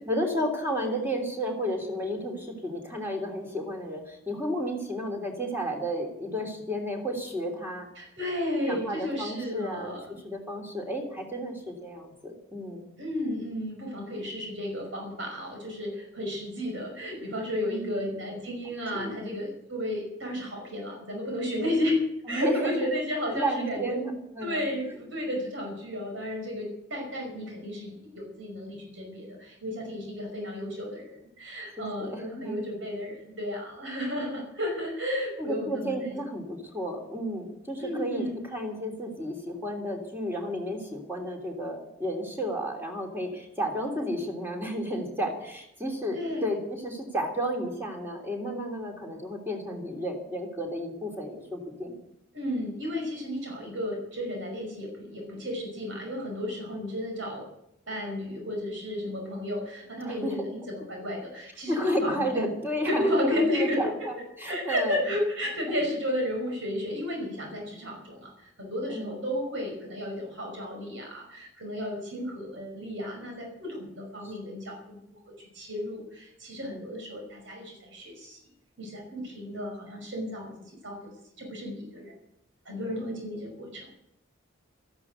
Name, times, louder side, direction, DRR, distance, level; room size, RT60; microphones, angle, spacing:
voice 1, 0.1-7.9 8.7-12.9 17.7-18.0 18.9-19.2 22.3-22.9 23.3-24.6 31.8-32.6 35.4-52.0 60.0-60.5 61.7-65.0 65.7-65.8 68.9-69.2 74.2-74.5 76.7-76.8 82.9-83.3, equal, 10° right, 0 dB, 3.1 m, -32 dB
voice 2, 8.0-10.2 13.0-22.0 22.3-24.0 24.4-36.1 37.8-38.4 46.1-46.6 52.3-57.4 57.9-62.5 62.8-64.1 64.5-78.4 78.8-80.5 80.8-82.1 82.7-83.9, left 1 dB, 75° right, 1 dB, 5.6 m, -33 dB
13.5 x 11.5 x 8.1 m, 0.79 s
head